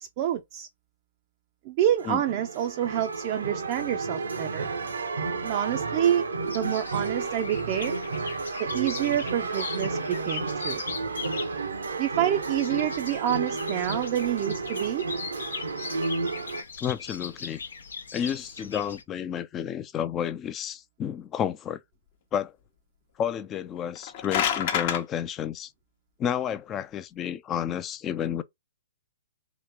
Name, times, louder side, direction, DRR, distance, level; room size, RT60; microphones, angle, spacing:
voice 1, 0.2-0.7 1.7-4.7 5.4-8.0 8.6-10.8 12.0-15.0, right 11 dB, 40° right, 0.4 m, -28 dB
sound 1, 1.9-16.6, right 4 dB, 85° right, 0.8 m, -32 dB
sound 2, 6.4-19.0, left 5 dB, 80° left, 0.7 m, -40 dB
voice 2, 16.8-17.6 18.1-21.8 22.3-22.5 23.2-25.7 26.2-28.4, left 9 dB, 20° left, 0.4 m, -31 dB
sound 3, 23.9-25.0, left 9 dB, 45° left, 0.8 m, -27 dB
3.0 x 2.8 x 3.4 m
hypercardioid pair, 130°, 0 cm